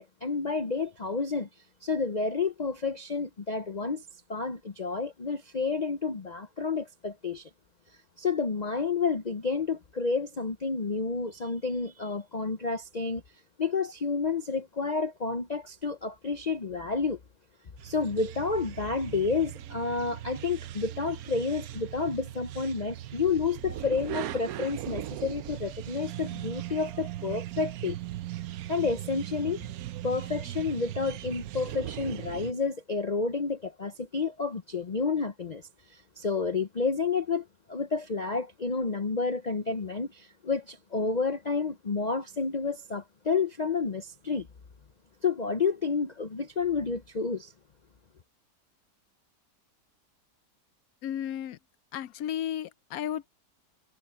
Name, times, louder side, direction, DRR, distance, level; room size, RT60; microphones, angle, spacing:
voice 1, 0.0-1.5 1.8-4.0 4.3-7.5 8.2-13.2 13.6-17.2 17.8-28.0 28.7-29.6 30.0-44.5 45.2-47.5, left 4 dB, 50° left, 0.5 m, -30 dB
sound 1, 17.8-32.5, right 13 dB, 70° right, 1.0 m, -39 dB
voice 2, 51.0-51.6 51.9-53.3, left 10 dB, 70° left, 0.9 m, -33 dB
omnidirectional pair, 1.8 m